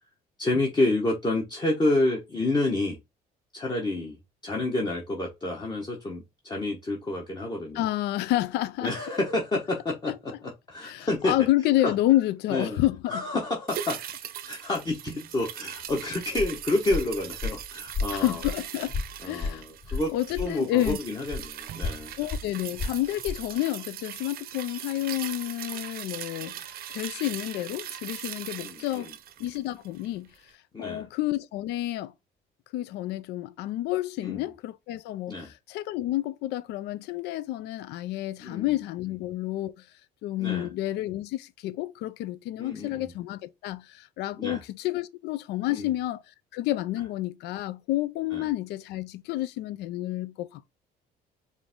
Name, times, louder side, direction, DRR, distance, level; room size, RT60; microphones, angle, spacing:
voice 1, 0.4-3.0 3.5-4.2 4.4-7.9 8.8-11.3 11.8-11.9 12.5-12.8 13.1-14.0 14.4-18.4 19.2-22.1 28.6-29.1 30.7-31.1 34.2-34.5 35.3-35.5 38.4-38.8 40.4-40.7 42.6-43.1 44.4-44.6 45.7-45.9 48.3-48.5, left 2 dB, 25° left, 1.1 m, -29 dB
voice 2, 7.7-8.9 10.1-10.2 10.8-13.2 18.1-19.0 19.2-19.6 19.9-21.0 22.2-29.1 29.4-30.5 30.8-32.1 32.7-39.9 40.2-50.7, left 15 dB, 80° left, 0.4 m, -29 dB
sound 1, 13.7-30.2 30.5-30.6, right 11 dB, 65° right, 0.6 m, -40 dB
Walk footsteps, 15.8-20.6 20.8-23.5, left 4 dB, 45° left, 2.9 m, -34 dB
4.9 x 2.6 x 3.6 m
cardioid pair, 110°, 17 cm